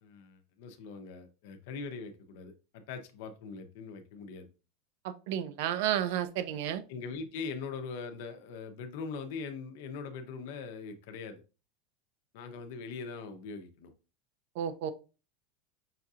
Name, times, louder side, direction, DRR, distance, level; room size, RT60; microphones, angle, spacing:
voice 1, 0.0-4.5 6.9-11.4 12.3-13.9, left 5 dB, 65° left, 0.7 m, -41 dB
voice 2, 5.0-6.8 14.6-14.9, right 10 dB, 60° right, 0.5 m, -32 dB
5.7 x 2.7 x 2.4 m
supercardioid pair, 155°, 0 cm